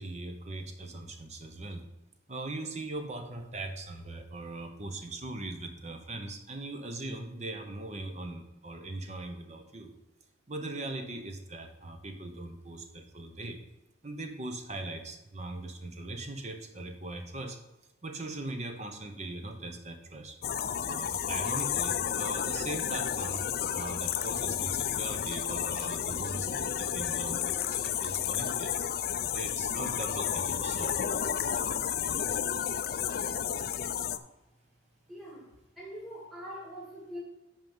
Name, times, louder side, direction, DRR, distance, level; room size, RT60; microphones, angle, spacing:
voice 1, 0.0-1.9 2.3-9.9 10.5-13.6 14.0-17.6 18.0-20.4 20.9-23.4 23.7-28.7 29.3-31.0, right 2 dB, 35° right, 5 dB, 0.9 m, -40 dB
sound 1, 20.4-34.2, left 9 dB, 50° left, 0.4 m, -31 dB
voice 2, 35.1-37.2, equal, ahead, -5 dB, 2.2 m, -43 dB
8.8 x 5.2 x 5.4 m, 0.98 s
head